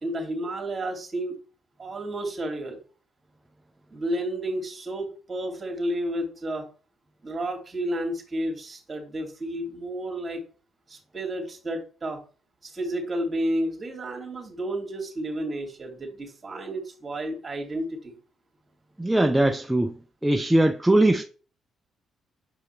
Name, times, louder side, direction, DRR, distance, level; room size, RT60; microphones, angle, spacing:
voice 1, 0.0-1.4 1.8-2.8 3.9-6.6 7.2-10.4 10.9-12.2 12.6-18.2, right 1 dB, 30° right, 2.6 m, -31 dB
voice 2, 19.0-19.9 20.2-21.2, right 1 dB, 5° right, 0.6 m, -20 dB
7.2 x 4.8 x 3.3 m
cardioid pair, 90°, 0 cm